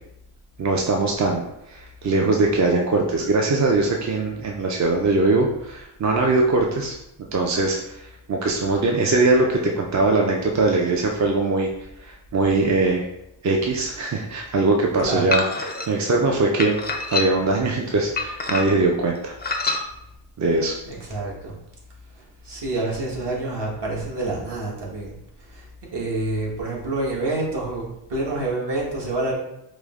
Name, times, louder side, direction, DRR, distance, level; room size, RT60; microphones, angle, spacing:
voice 1, 0.6-6.9 7.3-11.7 12.0-13.1 13.4-16.7 17.1-19.3 20.4-20.8, right 3 dB, 40° right, 0 dB, 0.5 m, -21 dB
sound 1, 15.3-15.9 16.6-17.5 18.2-18.9 19.4-19.8, left 4 dB, 25° left, 0.4 m, -26 dB
voice 2, 20.9-21.5 22.5-25.1 25.9-27.8 28.1-29.3, right 2 dB, 60° right, -4 dB, 1.4 m, -27 dB
4.9 x 2.1 x 3.6 m, 0.84 s
cardioid pair, 95°, 47 cm